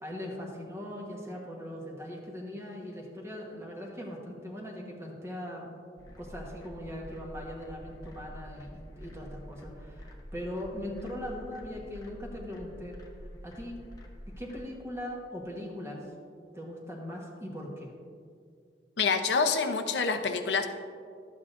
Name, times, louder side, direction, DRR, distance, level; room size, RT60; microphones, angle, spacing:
voice 1, 0.0-5.7 6.2-13.0 13.4-13.8 14.4-16.1 16.5-17.9, left 1 dB, 15° right, -2 dB, 1.1 m, -40 dB
sound 1, 6.0-14.6, equal, 20° left, 0.9 m, -47 dB
voice 2, 19.0-20.7, left 5 dB, 80° left, 7 dB, 0.7 m, -27 dB
12.0 x 8.5 x 2.5 m, 2.2 s
head